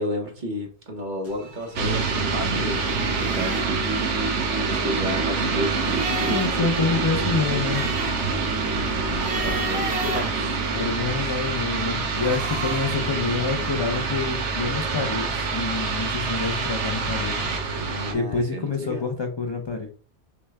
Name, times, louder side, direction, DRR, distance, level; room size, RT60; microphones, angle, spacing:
voice 1, 0.0-3.7 4.7-6.7 8.7-10.6 11.2-11.3 17.7-19.1, equal, 45° right, 1.1 m, -32 dB
sound 1, 1.2-2.4 2.7-3.7 4.5-6.7 7.0-7.1 7.5-11.1 12.0-13.1, right 2 dB, 65° right, 1.3 m, -34 dB
sound 2, 1.8-18.1, right 4 dB, 85° right, 1.2 m, -26 dB
voice 2, 6.3-7.9 10.7-17.5 18.1-19.9, left 4 dB, 45° left, 0.3 m, -27 dB
5.9 x 2.2 x 3.4 m
omnidirectional pair, 1.2 m